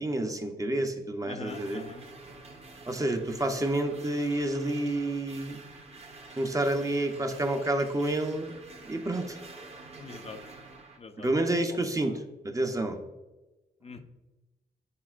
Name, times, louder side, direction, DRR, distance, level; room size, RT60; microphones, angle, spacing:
voice 1, 0.0-1.8 2.9-5.6 6.4-8.6 8.9-9.4 11.2-13.0, right 1 dB, 20° right, 5 dB, 0.7 m, -29 dB
voice 2, 1.3-2.0 10.0-10.4 11.0-11.5 12.0-12.2 13.8-14.0, left 4 dB, 40° left, 6 dB, 0.5 m, -43 dB
sound 1, 1.5-11.0, right 3 dB, 40° right, 1.0 m, -48 dB
9.5 x 4.2 x 2.4 m, 1.1 s
cardioid pair, 75°, 17 cm